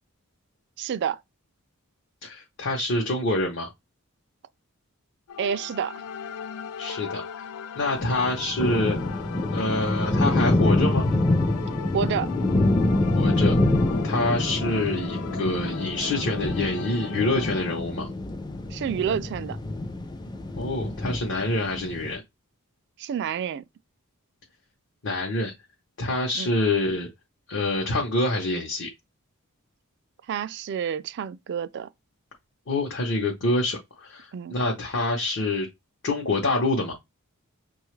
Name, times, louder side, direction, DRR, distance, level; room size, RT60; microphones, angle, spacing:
voice 1, 0.8-1.2 5.4-6.0 11.9-12.3 18.7-19.6 23.0-23.6 26.4-26.5 30.3-31.9 34.3-34.5, right 7 dB, 50° right, 0.3 m, -29 dB
voice 2, 2.2-3.7 6.8-7.2 7.8-9.2 9.5-11.0 13.1-13.6 14.0-18.1 20.6-22.2 25.0-25.5 26.0-27.1 27.5-28.9 32.7-35.7 36.0-36.9, left 2 dB, 55° left, 0.7 m, -26 dB
sound 1, 5.3-17.8, left 6 dB, 85° left, 0.4 m, -38 dB
sound 2, 8.0-22.2, left 2 dB, 20° left, 0.4 m, -26 dB
5.6 x 2.3 x 3.1 m
head